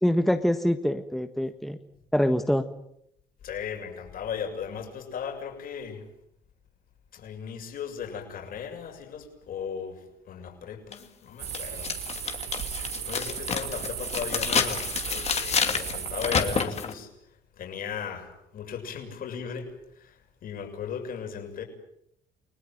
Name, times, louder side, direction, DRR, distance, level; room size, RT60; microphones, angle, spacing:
voice 1, 0.0-1.8 2.1-2.6, equal, ahead, 7 dB, 1.5 m, -24 dB
voice 2, 3.4-6.1 7.1-11.9 13.0-17.1 17.5-19.7 20.0-21.6, left 7 dB, 60° left, 3 dB, 7.1 m, -37 dB
sound 1, 10.9-11.0 11.5-16.9, left 6 dB, 40° left, 2.6 m, -29 dB
sound 2, 11.4-16.6, right 10 dB, 75° right, 3.5 m, -36 dB
29.5 x 19.5 x 9.1 m, 0.76 s
cardioid pair, 110°, 17 cm